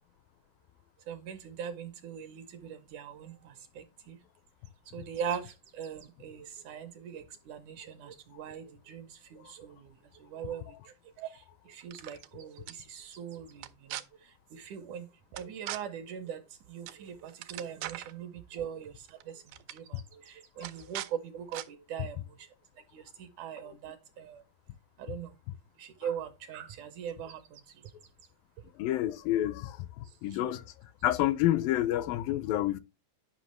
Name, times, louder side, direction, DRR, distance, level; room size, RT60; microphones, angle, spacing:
voice 1, 1.1-4.2 4.9-15.1 15.3-16.4 16.7-22.5 22.9-24.4 25.0-25.4 25.8-27.9 30.4-30.5, right 8 dB, 70° right, 2.0 m, -41 dB
sound 1, 11.8-12.3 12.7-12.8 13.6-14.0 15.4-15.8 16.9-17.0 17.3-18.1 19.1-19.2 19.5-19.8 20.6-21.1 21.5-21.7, right 15 dB, 90° right, 2.5 m, -40 dB
voice 2, 28.8-29.9 30.2-30.6 31.0-32.8, left 14 dB, 80° left, 2.3 m, -28 dB
10.5 x 5.7 x 3.0 m
omnidirectional pair, 4.1 m